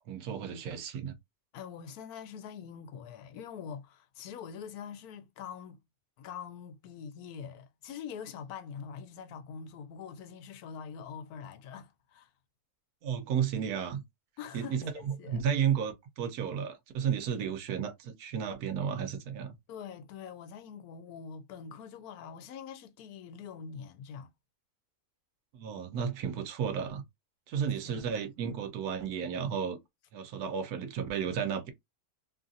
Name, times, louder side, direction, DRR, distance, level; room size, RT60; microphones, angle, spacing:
voice 1, 0.1-1.1 13.0-14.0 14.5-19.5 25.5-27.0 27.5-29.8 30.1-31.7, right 7 dB, 75° right, 1.2 m, -33 dB
voice 2, 1.5-5.8 6.2-12.3 14.4-15.4 19.7-24.3 27.9-28.1, left 7 dB, 80° left, 1.1 m, -44 dB
3.0 x 2.6 x 2.4 m
omnidirectional pair, 1.6 m